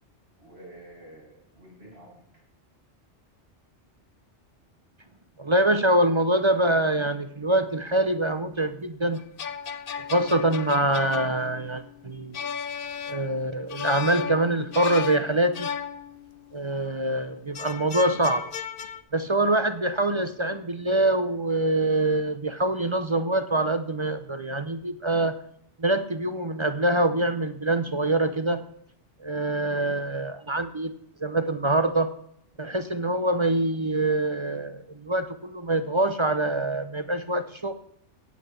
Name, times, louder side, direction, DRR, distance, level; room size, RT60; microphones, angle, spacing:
voice 1, 0.4-2.4, right 1 dB, 60° right, -5 dB, 7.5 m, -49 dB
voice 2, 5.4-9.2 10.1-12.5 13.1-15.7 16.5-18.5 19.1-25.3 25.8-28.6 29.2-30.9 31.2-32.1 32.6-37.7, right 1 dB, 30° right, 10 dB, 0.7 m, -25 dB
sound 1, 9.2-16.6 17.5-19.0, left 7 dB, 55° left, 0.9 m, -35 dB
17.0 x 5.8 x 8.1 m, 0.69 s
omnidirectional pair, 1.2 m